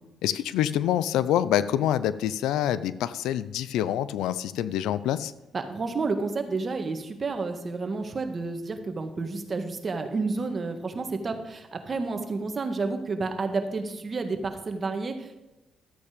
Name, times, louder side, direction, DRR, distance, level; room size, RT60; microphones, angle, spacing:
voice 1, 0.2-5.3, left 11 dB, 90° left, 16 dB, 0.5 m, -26 dB
voice 2, 5.5-15.3, right 3 dB, 35° right, 6 dB, 1.8 m, -30 dB
13.0 x 8.5 x 5.2 m, 1.0 s
cardioid pair, 90°, 0 cm